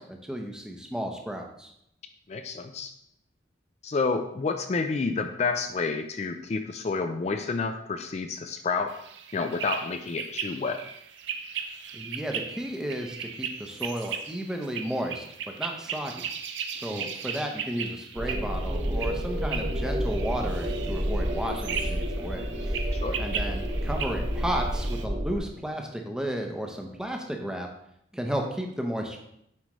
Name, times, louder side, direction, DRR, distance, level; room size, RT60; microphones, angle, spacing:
voice 1, 0.0-1.7 11.9-16.2 16.7-22.8 23.2-27.7 28.1-29.2, right 1 dB, 5° right, 2 dB, 0.7 m, -33 dB
voice 2, 2.3-2.9 3.8-8.9 9.3-10.8 16.9-17.1 22.9-23.2, left 4 dB, 35° left, 7 dB, 0.3 m, -29 dB
sound 1, 8.9-25.0, right 6 dB, 75° right, 0.6 m, -37 dB
sound 2, 18.1-25.4, equal, 45° right, 1.0 m, -30 dB
7.5 x 4.8 x 3.1 m, 0.76 s
head